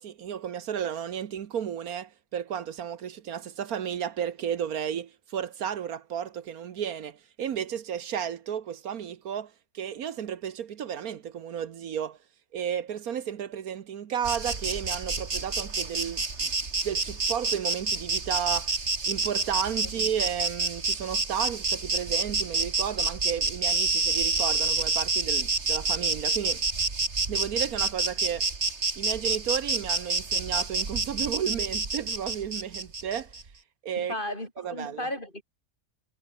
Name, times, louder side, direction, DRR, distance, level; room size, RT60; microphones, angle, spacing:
voice 1, 0.0-12.2 12.5-16.5 16.8-18.8 19.0-26.6 27.3-28.5 28.9-33.3 33.8-34.1 34.6-35.1, right 8 dB, 65° right, 1.4 m, -33 dB
Insect, 14.2-33.4, right 4 dB, 45° right, 2.7 m, -28 dB
voice 2, 34.0-35.4, left 1 dB, 30° left, 7.5 m, -35 dB
omnidirectional pair, 1.7 m